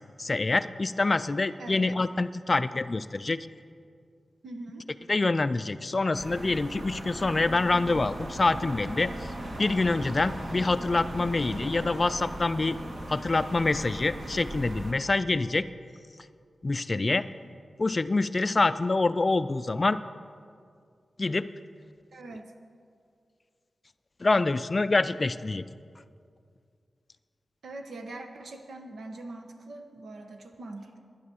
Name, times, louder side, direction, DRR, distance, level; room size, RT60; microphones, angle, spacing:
voice 1, 0.2-3.5 5.1-9.3 9.6-12.8 13.1-15.7 16.6-17.2 17.8-20.0 21.2-21.5 24.2-25.6, left 3 dB, 30° left, 13 dB, 0.3 m, -26 dB
voice 2, 1.6-2.0 4.4-4.9 16.9-17.2 22.1-22.5 27.6-31.0, right 2 dB, 90° right, 4 dB, 1.3 m, -42 dB
sound 1, 6.1-14.9, right 1 dB, 50° right, 1.6 m, -38 dB
11.5 x 10.5 x 7.0 m, 2.2 s
wide cardioid pair, 160°, 0 cm